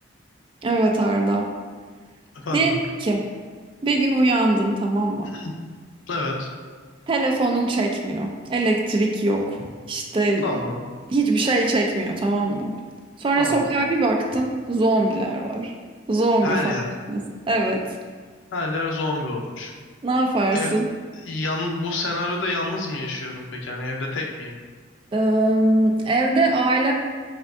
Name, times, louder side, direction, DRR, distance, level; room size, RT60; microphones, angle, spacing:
voice 1, 0.6-1.5 2.5-2.8 3.0-3.2 3.8-5.3 7.1-10.6 11.1-12.7 13.2-15.7 16.1-16.7 17.1-17.2 17.5-17.8 20.0-20.8 25.1-26.9, right 2 dB, 30° right, 1 dB, 0.3 m, -21 dB
voice 2, 2.3-2.7 5.3-5.6 6.1-6.5 10.4-10.8 13.4-13.7 16.4-16.8 18.5-19.7 20.5-20.8 21.1-24.6, left 2 dB, 80° left, 1 dB, 0.5 m, -28 dB
3.5 x 2.4 x 3.5 m, 1.5 s
head